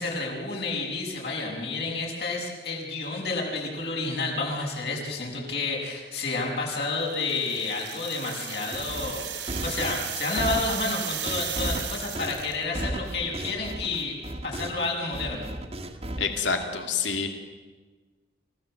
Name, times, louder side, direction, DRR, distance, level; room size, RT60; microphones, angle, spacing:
voice 1, 0.0-14.1 14.4-15.5, left 3 dB, 65° left, -1 dB, 6.8 m, -30 dB
sound 1, 7.1-12.6, right 9 dB, 85° right, 3.9 m, -35 dB
sound 2, 8.7-14.9 15.1-16.6, right 1 dB, 35° right, 1.8 m, -35 dB
voice 2, 16.2-17.4, left 5 dB, 85° left, 5 dB, 2.4 m, -27 dB
30.0 x 16.0 x 7.8 m, 1.3 s
head